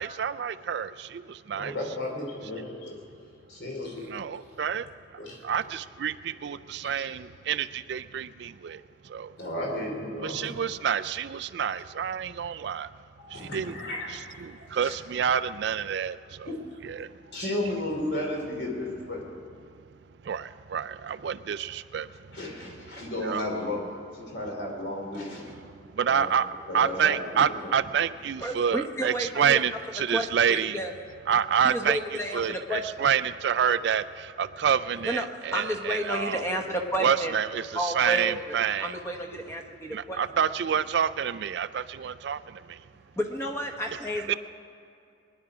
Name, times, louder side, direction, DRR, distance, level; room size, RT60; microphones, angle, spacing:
voice 1, 0.0-1.7 4.1-9.3 10.2-12.9 13.3-13.7 14.1-16.5 16.8-17.1 20.2-22.3 23.2-23.4 25.9-26.5 26.7-30.8 31.3-36.5 37.0-39.0 39.9-42.8 43.9-44.3, right 8 dB, 60° right, 13 dB, 0.3 m, -28 dB
voice 2, 1.5-3.0 3.5-4.1 5.2-5.4 6.9-7.0 9.4-10.5 13.2-14.3 14.6-14.9 16.4-16.5 17.3-19.2 22.3-23.8 24.1-25.6 26.1-26.3 26.7-27.2 27.6-27.7, left 1 dB, 60° left, 0 dB, 3.4 m, -34 dB
voice 3, 28.4-29.3 30.1-30.9 31.9-32.8 35.1-35.2 35.5-37.3 37.8-38.3 38.8-40.2 43.2-44.3, equal, 15° left, 3 dB, 1.1 m, -31 dB
23.0 x 10.5 x 4.9 m, 2.4 s
head